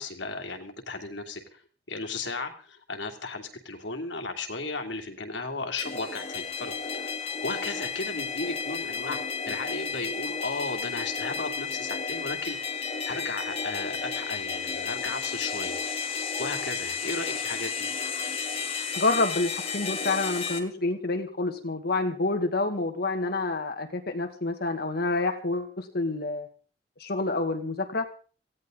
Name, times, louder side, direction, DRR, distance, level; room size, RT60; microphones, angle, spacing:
voice 1, 0.0-1.6 1.9-7.1 7.4-9.2 9.5-12.6 13.1-15.8 16.4-17.9, left 3 dB, 85° left, 5 dB, 2.7 m, -35 dB
sound 1, 5.8-20.6, left 5 dB, 35° left, 2.7 m, -33 dB
voice 2, 18.9-26.5 27.0-28.1, left 3 dB, 60° left, 6 dB, 2.1 m, -28 dB
18.5 x 16.0 x 3.9 m, 0.39 s
head